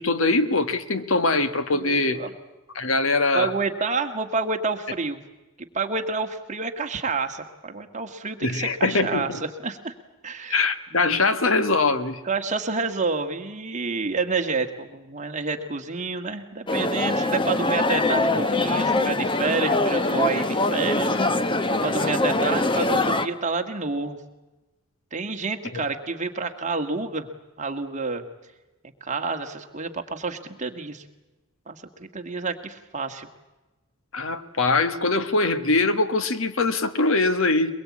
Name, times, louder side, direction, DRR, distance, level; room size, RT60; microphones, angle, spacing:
voice 1, 0.0-2.2 2.7-3.5 8.4-9.4 10.5-12.2 25.7-25.8 34.1-37.7, left 3 dB, 65° left, 11 dB, 1.4 m, -22 dB
voice 2, 1.7-2.3 3.3-5.2 5.6-9.3 9.6-9.9 10.2-10.7 10.9-11.2 12.3-21.1 21.8-24.2 25.1-27.3 27.6-28.2 29.0-31.0 31.7-33.3, right 4 dB, 35° right, 5 dB, 1.7 m, -29 dB
sound 1, 16.7-23.3, left 2 dB, 25° left, 1.0 m, -23 dB
23.0 x 22.0 x 8.5 m, 1.1 s
head